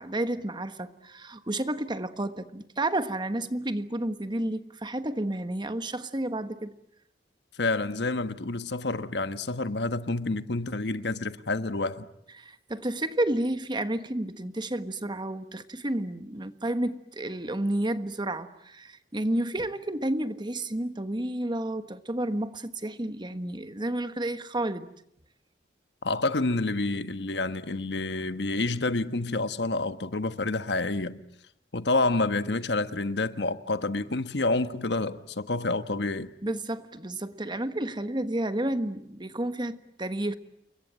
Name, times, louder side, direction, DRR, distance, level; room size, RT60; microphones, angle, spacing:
voice 1, 0.0-6.7 12.4-24.9 36.4-40.3, right 1 dB, 25° right, 1.3 m, -31 dB
voice 2, 7.6-12.1 26.0-31.2 31.7-36.3, left 2 dB, 70° left, 1.3 m, -28 dB
29.5 x 22.5 x 8.9 m
head